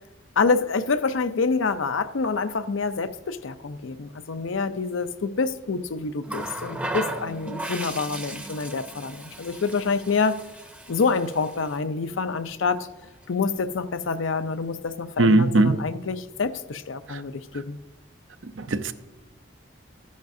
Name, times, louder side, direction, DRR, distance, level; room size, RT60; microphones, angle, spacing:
voice 1, 0.4-10.4 10.9-12.9 13.3-17.8, left 4 dB, 75° left, 11 dB, 0.6 m, -27 dB
Water tap faucet, 6.2-11.8 13.0-13.2, right 2 dB, 5° right, 0.6 m, -36 dB
voice 2, 15.2-15.8 17.1-17.2 18.6-18.9, right 2 dB, 75° right, 10 dB, 0.6 m, -19 dB
13.0 x 10.5 x 2.6 m, 1.1 s
head